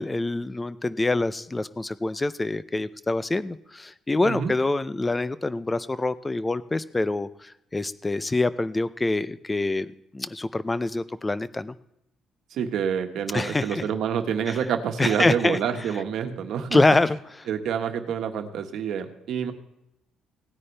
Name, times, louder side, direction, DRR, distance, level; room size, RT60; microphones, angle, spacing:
voice 1, 0.0-9.9 10.1-11.8 13.3-13.8 14.5-14.6 15.0-15.6 16.7-17.2, left 2 dB, 10° left, 15 dB, 0.4 m, -25 dB
voice 2, 12.5-16.8 17.5-19.5, right 8 dB, 60° right, 6 dB, 1.4 m, -27 dB
18.0 x 9.7 x 3.3 m, 0.82 s
cardioid pair, 165°, 0 cm